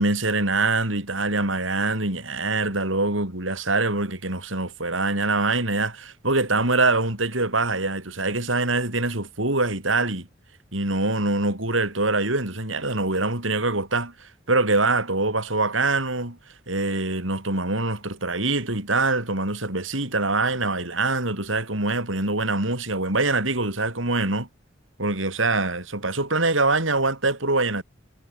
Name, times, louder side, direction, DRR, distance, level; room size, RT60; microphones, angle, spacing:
voice 1, 0.0-10.3 10.7-16.4 16.7-24.5 25.0-27.8, right 3 dB, 85° right, 6.3 m, -24 dB
head